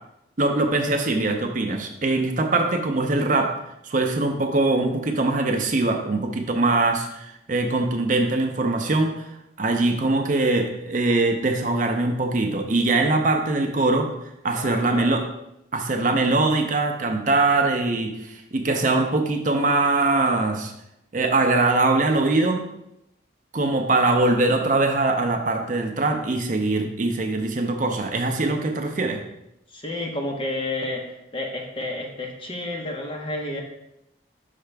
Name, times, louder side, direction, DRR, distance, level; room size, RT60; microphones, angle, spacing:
voice 1, 0.4-3.5 3.8-9.3 9.6-14.1 14.4-15.2 15.7-20.7 21.1-22.6 23.5-29.2, right 2 dB, 40° right, 4 dB, 0.5 m, -22 dB
voice 2, 14.5-15.1 29.7-33.6, left 2 dB, 25° left, 0 dB, 0.8 m, -31 dB
5.7 x 4.9 x 3.3 m, 0.84 s
head